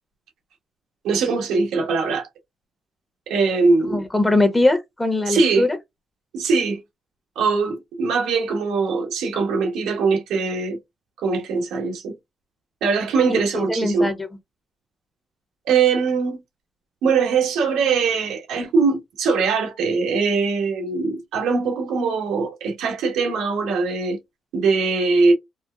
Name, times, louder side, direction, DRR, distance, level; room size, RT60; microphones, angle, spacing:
voice 1, 1.0-2.3 3.3-4.0 5.3-5.6 6.3-6.8 7.3-10.8 11.2-12.2 12.8-14.1 15.6-16.4 17.0-24.2 24.5-25.3, right 4 dB, 90° right, 1.2 m, -21 dB
voice 2, 3.9-5.8 13.3-14.3, left 2 dB, 15° left, 0.9 m, -21 dB
4.3 x 2.1 x 2.2 m
cardioid pair, 90°, 0 cm